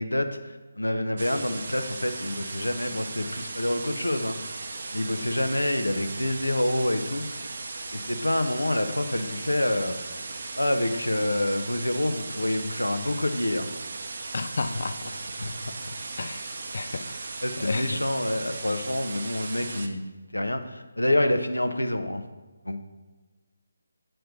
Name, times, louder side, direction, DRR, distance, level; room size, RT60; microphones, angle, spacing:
voice 1, 0.0-4.4 4.9-7.3 7.9-10.0 10.6-13.7 15.4-15.9 17.4-20.0 20.3-22.2 22.6-22.8, left 1 dB, 80° left, 8 dB, 0.8 m, -27 dB
sound 1, 1.2-19.9, right 3 dB, 45° right, 0.6 m, -37 dB
voice 2, 14.3-15.0 16.2-16.5 16.7-17.2 17.6-18.0, left 3 dB, 50° left, 10 dB, 0.5 m, -31 dB
8.1 x 4.5 x 5.1 m, 1.3 s
figure-of-eight pair, 150°, 0 cm